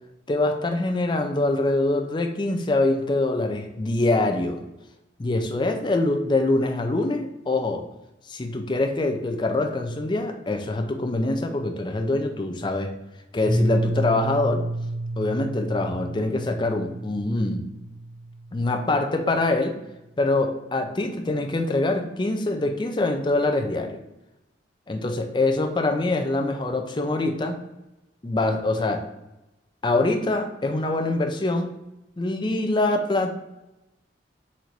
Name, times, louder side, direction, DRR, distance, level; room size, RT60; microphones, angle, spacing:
voice 1, 0.3-4.6 5.2-7.9 8.3-12.9 13.3-14.6 15.2-17.7 18.5-19.8 20.2-24.0 24.9-27.6 28.2-29.0 29.8-31.7 32.2-33.3, left 2 dB, 25° left, 5 dB, 0.4 m, -24 dB
Piano, 13.4-19.1, right 1 dB, 70° right, 1.2 m, -30 dB
4.2 x 2.6 x 4.5 m, 0.94 s
head